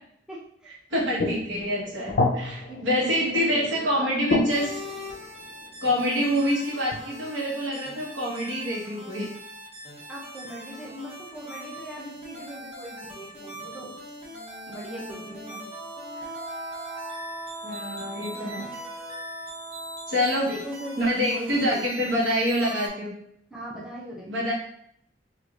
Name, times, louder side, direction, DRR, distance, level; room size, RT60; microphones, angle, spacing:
voice 1, 0.3-0.7 2.7-4.1 10.1-13.9 14.7-15.7 20.5-21.0 21.3-21.8 22.1-22.2 23.5-24.5, equal, 5° right, -5 dB, 0.6 m, -39 dB
voice 2, 0.9-4.8 5.8-9.3 16.2-16.3 17.6-18.7 20.1-20.5 21.0-23.1 24.3-24.5, equal, 75° right, -4 dB, 1.2 m, -26 dB
sound 1, 1.0-3.9 4.3-5.9 6.9-7.0, left 2 dB, 55° left, 0.5 m, -29 dB
sound 2, 4.5-22.9, equal, 35° right, 1.1 m, -42 dB
Wind instrument woodwind instrument, 14.3-20.5, right 2 dB, 20° left, 1.1 m, -40 dB
4.6 x 2.5 x 2.4 m, 0.70 s
head